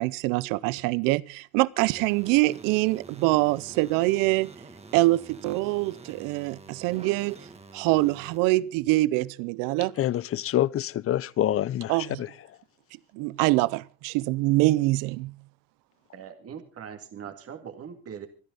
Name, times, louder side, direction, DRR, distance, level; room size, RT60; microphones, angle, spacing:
voice 1, 0.0-4.5 4.9-7.4 7.7-9.9 11.9-12.2 13.1-15.3, right 20 dB, 80° right, 0.7 m, -24 dB
sound 1, 1.8-8.4, right 3 dB, 20° right, 2.2 m, -47 dB
voice 2, 10.0-12.3, left 12 dB, 45° left, 0.7 m, -26 dB
voice 3, 16.1-18.3, right 8 dB, 45° right, 2.3 m, -41 dB
26.0 x 10.5 x 4.0 m
supercardioid pair, 100°, 32 cm